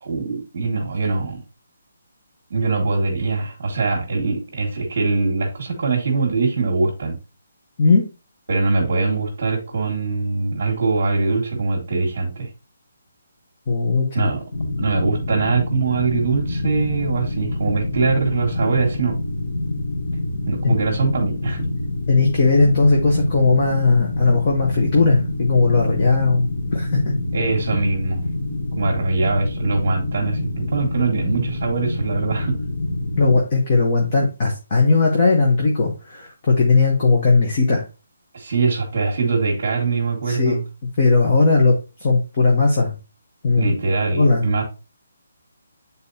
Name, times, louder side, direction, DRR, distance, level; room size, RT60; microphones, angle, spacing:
voice 1, 0.0-1.4 2.5-7.2 8.5-12.5 14.1-14.4 14.8-19.2 20.4-21.6 27.3-28.2 28.8-32.6 38.3-40.6 43.6-44.6, right 4 dB, 35° right, -4 dB, 1.6 m, -22 dB
voice 2, 13.7-14.3 20.6-20.7 22.1-27.0 33.2-37.8 40.3-40.6 41.0-41.7 42.0-42.9 43.4-43.7 44.1-44.5, left 3 dB, 25° left, -1 dB, 0.9 m, -17 dB
sound 1, 14.5-33.4, left 2 dB, 50° left, 1.6 m, -26 dB
8.9 x 4.0 x 2.7 m, 0.30 s
hypercardioid pair, 180°, 0 cm